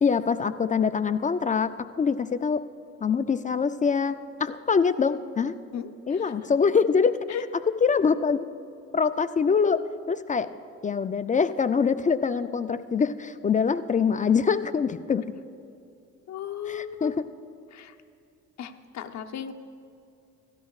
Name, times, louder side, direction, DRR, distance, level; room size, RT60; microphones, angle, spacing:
voice 1, 0.0-1.7 2.0-2.6 3.0-5.5 6.1-7.2 7.8-8.4 8.9-10.5 10.8-15.2 16.7-17.1, left 6 dB, 25° left, 12 dB, 0.3 m, -24 dB
voice 2, 5.7-6.2 7.3-7.4 16.3-17.2 17.7-17.9 18.6-19.5, left 9 dB, 65° left, 6 dB, 0.8 m, -36 dB
17.5 x 13.0 x 2.4 m, 2.6 s
cardioid pair, 90°, 30 cm